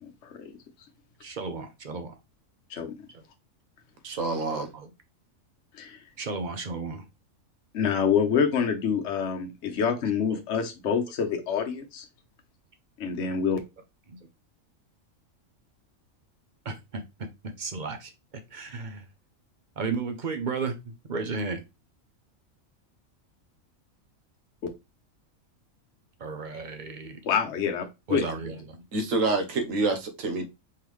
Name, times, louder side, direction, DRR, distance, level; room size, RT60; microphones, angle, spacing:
voice 1, 0.0-0.5 2.7-2.9 5.7-6.0 7.7-12.1 13.0-13.6 27.2-28.3, left 7 dB, 60° left, 1.1 m, -27 dB
voice 2, 1.2-2.2 4.5-4.9 6.2-7.0 10.3-10.4 16.6-17.0 17.6-18.1 18.5-19.0 19.8-21.6 26.2-27.2 28.1-28.8, right 4 dB, 45° right, 0.7 m, -34 dB
voice 3, 4.0-4.7 28.9-30.5, right 3 dB, 70° right, 1.3 m, -27 dB
4.6 x 3.6 x 3.1 m
omnidirectional pair, 1.4 m